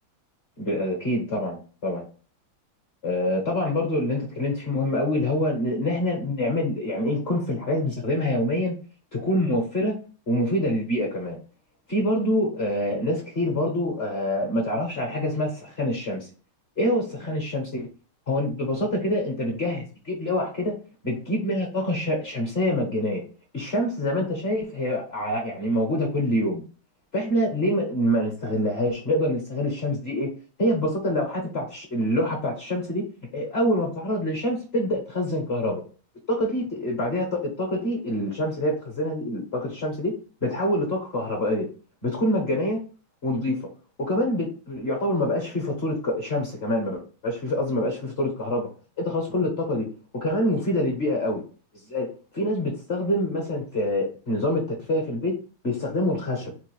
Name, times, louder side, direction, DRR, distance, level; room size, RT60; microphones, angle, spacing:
voice 1, 0.6-2.0 3.0-8.8 9.1-10.0 10.3-11.4 11.9-16.3 16.8-17.9 18.3-20.7 21.0-23.2 23.5-26.6 27.1-30.3 30.6-33.1 33.3-35.8 36.3-40.1 40.4-41.7 42.0-42.8 43.2-43.7 44.0-48.7 49.0-49.9 50.1-51.4 51.9-55.4 55.6-56.5, left 1 dB, 40° left, 0 dB, 1.1 m, -26 dB
4.5 x 2.4 x 4.7 m, 0.37 s
omnidirectional pair, 2.3 m